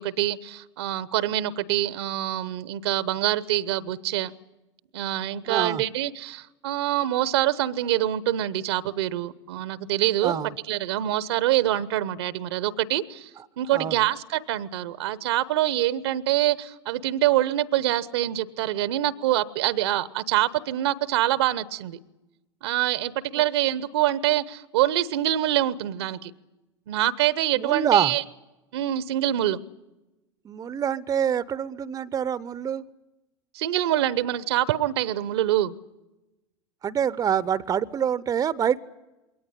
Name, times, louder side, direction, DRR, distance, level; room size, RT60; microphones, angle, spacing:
voice 1, 0.0-4.3 4.9-10.4 10.7-13.3 13.6-22.0 22.6-26.3 26.9-28.2 28.7-29.6 33.5-35.7, right 13 dB, 65° right, 18 dB, 0.9 m, -25 dB
voice 2, 5.5-5.8 10.2-10.5 13.7-14.0 27.6-28.1 30.4-32.8 36.8-38.8, right 8 dB, 25° right, 18 dB, 0.8 m, -25 dB
22.0 x 18.5 x 9.9 m, 1.0 s
figure-of-eight pair, 80°, 15 cm